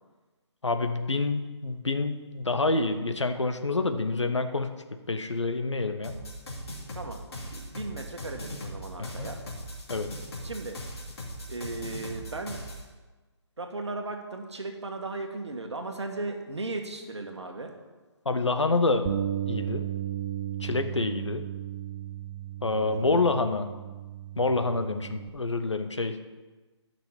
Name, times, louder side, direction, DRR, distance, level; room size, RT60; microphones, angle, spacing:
voice 1, 0.6-4.8 5.1-6.1 9.0-9.3 9.9-10.1 18.2-19.1 19.5-19.9 20.6-21.4 22.6-23.7 24.4-26.2, left 3 dB, 80° left, 8 dB, 0.9 m, -27 dB
sound 1, 6.0-12.8, equal, 60° left, 2.6 m, -39 dB
voice 2, 6.9-9.4 10.4-10.8 11.5-12.6 13.6-17.7 22.9-23.2, right 2 dB, 70° right, 4 dB, 1.5 m, -36 dB
Bass guitar, 19.0-25.3, right 11 dB, 25° right, 0.5 m, -35 dB
11.0 x 5.9 x 5.7 m, 1.3 s
figure-of-eight pair, 145°, 15 cm